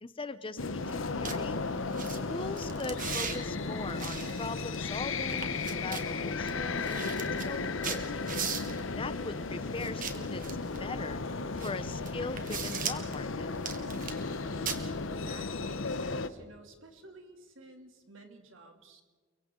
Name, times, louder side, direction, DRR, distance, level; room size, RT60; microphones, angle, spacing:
voice 1, 0.0-1.6 2.0-8.2 8.9-10.4 10.8-11.2 11.6-13.5, left 3 dB, 25° left, 13 dB, 0.8 m, -40 dB
sound 1, 0.6-16.3, left 3 dB, 80° left, 0.9 m, -35 dB
sound 2, 0.9-1.0 1.2-1.4 1.9-2.2 2.6-3.4 4.0-5.0 5.3-6.1 6.5-6.6 6.8-8.8 9.8-10.8 11.6-11.7 12.0-13.1 13.5-14.3 14.7-14.8, right 7 dB, 45° right, 1.7 m, -38 dB
sound 3, 1.2-13.2, equal, 10° right, 4.1 m, -54 dB
voice 2, 15.1-19.0, right 2 dB, 80° right, 4 dB, 2.9 m, -52 dB
29.5 x 23.5 x 3.9 m, 1.4 s
head